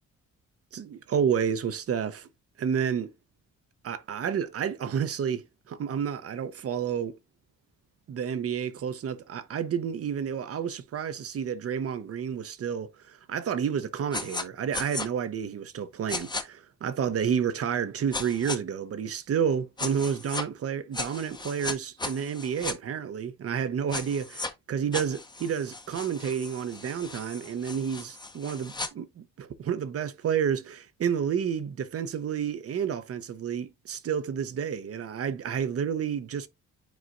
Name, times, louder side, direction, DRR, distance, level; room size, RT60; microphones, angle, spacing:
voice 1, 0.7-2.3 2.6-3.1 3.8-7.2 8.1-36.5, right 7 dB, 50° right, 0.8 m, -30 dB
sound 1, 14.1-14.4 14.7-15.1 16.1-16.4 18.1-18.6 19.8-20.4 20.9-22.7 23.9-24.5 24.9-28.9, left 3 dB, 15° left, 0.8 m, -36 dB
9.3 x 4.1 x 2.5 m
cardioid pair, 90°, 30 cm